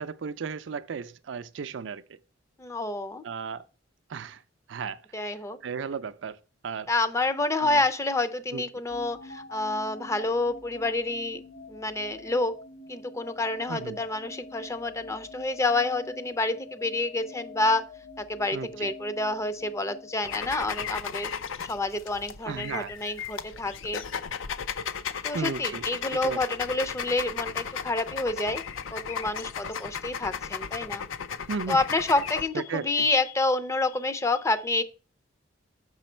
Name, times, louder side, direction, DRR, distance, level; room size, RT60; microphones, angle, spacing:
voice 1, 0.0-2.2 3.2-3.7 4.1-4.4 4.7-5.0 5.6-6.4 6.6-6.9 7.6-7.8 8.5-8.6 13.7-14.0 18.5-18.9 22.5-22.9 25.3-25.8 26.2-26.4 31.5-31.8 32.5-33.0, right 5 dB, 65° right, 0.4 m, -34 dB
voice 2, 2.6-3.2 5.1-5.6 6.9-11.4 11.7-12.5 12.9-17.8 18.2-21.3 21.6-24.0 25.2-28.6 28.9-31.0 31.7-34.8, left 2 dB, 15° left, 0.4 m, -28 dB
sound 1, 8.9-21.0, left 3 dB, 60° left, 1.2 m, -46 dB
sound 2, 20.2-32.5, left 7 dB, 80° left, 0.5 m, -35 dB
6.2 x 5.7 x 4.3 m
head